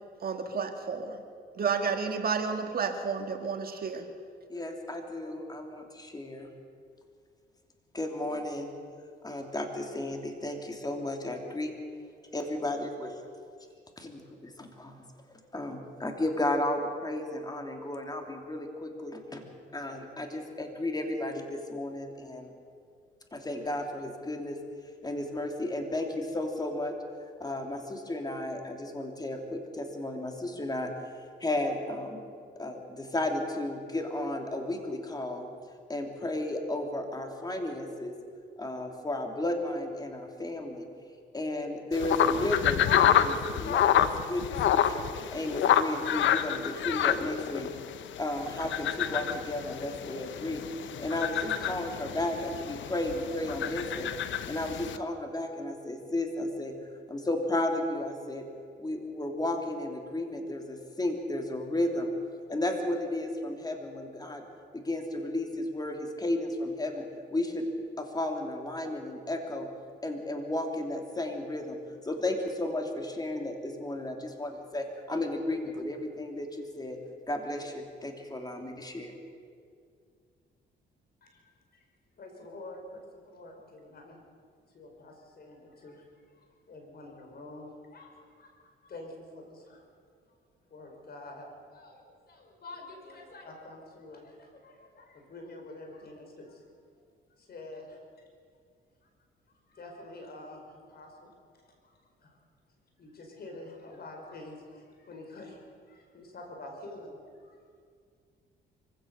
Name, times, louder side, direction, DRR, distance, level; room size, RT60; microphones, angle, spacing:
voice 1, 0.2-1.2 1.6-4.1, right 5 dB, 50° right, 5 dB, 2.0 m, -31 dB
voice 2, 4.5-6.5 7.9-8.7 9.2-11.7 12.3-13.2 14.0-15.0 15.5-19.4 19.7-22.5 23.3-24.6 25.0-26.9 27.4-30.9 31.4-32.2 32.6-35.5 35.9-38.1 38.6-40.9 41.3-44.4 44.7-45.0 45.3-47.7 48.2-50.6 51.0-54.1 54.5-56.7 57.1-58.4 58.8-62.1 62.5-64.4 64.7-67.0 67.3-67.7 68.0-69.7 70.0-71.8 72.0-77.0 77.3-79.1, left 1 dB, 20° left, 3 dB, 3.0 m, -33 dB
sound 1, 41.9-55.0, left 10 dB, 75° left, 1.0 m, -28 dB
voice 3, 81.2-81.9 82.2-84.2 84.7-89.8 90.7-96.6 97.4-98.3 99.5-101.3 101.6-102.4 103.0-107.6, left 2 dB, 50° left, 2 dB, 5.1 m, -47 dB
24.0 x 16.0 x 6.7 m, 2.2 s
cardioid pair, 90°, 20 cm